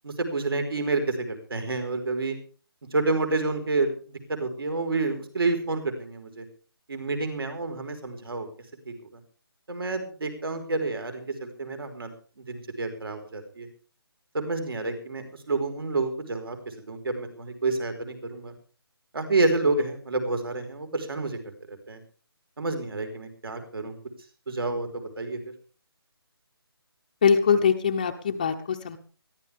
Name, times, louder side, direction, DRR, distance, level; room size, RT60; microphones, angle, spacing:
voice 1, 0.0-2.4 2.9-3.9 4.3-6.5 6.9-8.5 8.9-9.0 9.7-12.1 12.4-13.7 14.3-16.6 16.9-18.5 19.1-22.0 22.6-24.0 24.5-25.4, right 3 dB, 65° right, 6 dB, 4.7 m, -29 dB
voice 2, 27.2-29.0, left 6 dB, 20° left, 5 dB, 0.7 m, -22 dB
21.5 x 14.5 x 3.5 m, 0.37 s
hypercardioid pair, 175°, 13 cm